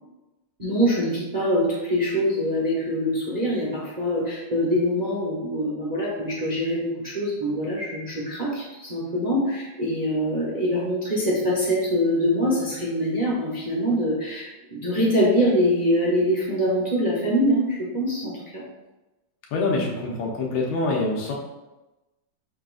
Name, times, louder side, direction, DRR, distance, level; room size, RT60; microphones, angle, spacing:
voice 1, 0.6-18.6, equal, 45° right, -6 dB, 0.5 m, -24 dB
voice 2, 19.5-21.3, left 3 dB, 90° left, -1 dB, 1.8 m, -25 dB
5.7 x 3.8 x 2.5 m, 1.1 s
omnidirectional pair, 2.2 m